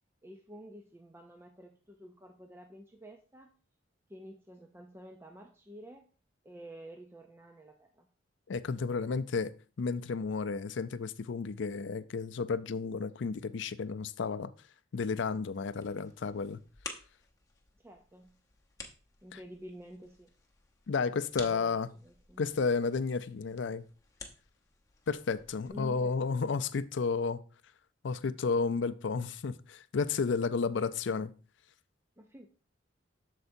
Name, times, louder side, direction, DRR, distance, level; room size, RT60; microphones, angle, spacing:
voice 1, 0.2-3.5 4.1-6.1 6.4-8.1 17.8-18.4 19.2-20.3 21.4-22.5 25.7-26.2 32.2-32.5, equal, 10° right, 0.5 m, -50 dB
voice 2, 8.5-14.5 14.9-16.6 19.3-19.4 20.9-21.9 22.4-23.8 25.1-27.4 28.0-31.3, left 4 dB, 65° left, 0.4 m, -32 dB
sound 1, 15.5-25.7, left 4 dB, 15° left, 0.9 m, -51 dB
8.0 x 6.7 x 2.7 m
head